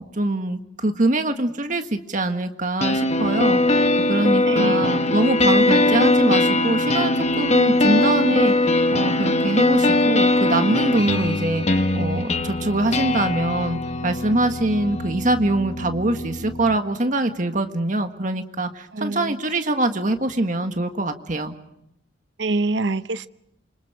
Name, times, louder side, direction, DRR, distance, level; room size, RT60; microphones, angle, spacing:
voice 1, 0.0-3.8 4.1-21.5, right 2 dB, 45° right, 6 dB, 1.7 m, -24 dB
sound 1, 2.8-16.8, left 2 dB, 35° left, 1.2 m, -21 dB
voice 2, 4.5-4.8 18.9-19.4 22.4-23.3, right 2 dB, 70° right, 13 dB, 0.8 m, -25 dB
28.0 x 25.5 x 5.1 m, 0.79 s
head